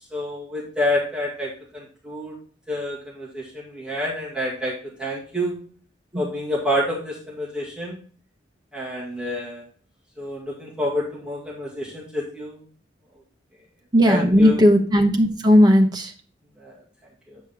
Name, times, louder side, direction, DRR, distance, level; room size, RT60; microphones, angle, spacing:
voice 1, 0.1-2.3 2.7-5.6 6.2-8.0 8.7-9.6 10.2-12.6 14.1-14.6 16.6-16.7 17.3-17.4, left 1 dB, 5° right, -6 dB, 2.1 m, -28 dB
voice 2, 13.9-16.1, equal, 20° right, 2 dB, 1.1 m, -16 dB
8.3 x 5.2 x 3.6 m, 0.43 s
head